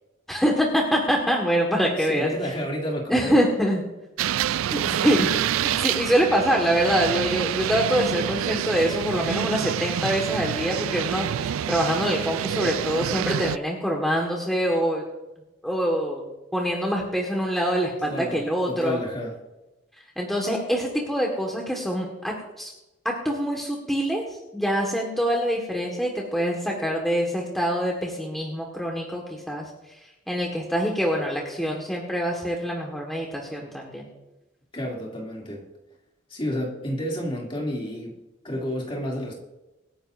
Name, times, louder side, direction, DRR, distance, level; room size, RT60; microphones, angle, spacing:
voice 1, 0.3-2.3 3.1-3.8 4.7-15.0 15.6-16.3 16.5-19.0 20.2-22.7 23.0-29.7 30.3-34.1, equal, ahead, -1 dB, 1.5 m, -25 dB
voice 2, 2.0-3.4 18.0-19.4 34.7-35.6 36.3-38.2 38.4-39.3, equal, 25° left, -2 dB, 2.6 m, -30 dB
sound 1, 4.2-13.6, right 10 dB, 90° right, 0.3 m, -27 dB
25.5 x 10.0 x 2.6 m, 1.0 s
head